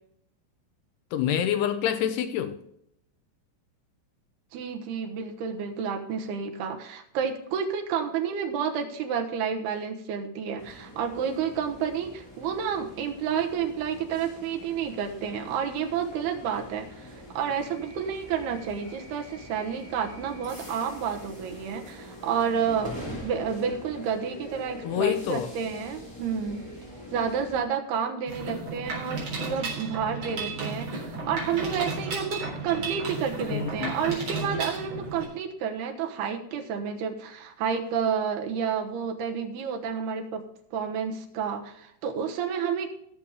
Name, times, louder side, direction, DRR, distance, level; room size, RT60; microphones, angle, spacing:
voice 1, 1.1-2.6 24.8-25.5 33.5-34.0, left 10 dB, 80° left, 2.6 m, -27 dB
voice 2, 4.5-26.6 27.1-40.4 40.7-42.9, right 7 dB, 70° right, 2.9 m, -30 dB
sound 1, 10.6-27.6, equal, 5° left, 3.0 m, -44 dB
Mechanisms, 28.3-35.3, right 3 dB, 40° right, 4.6 m, -34 dB
18.0 x 7.1 x 3.5 m
omnidirectional pair, 5.1 m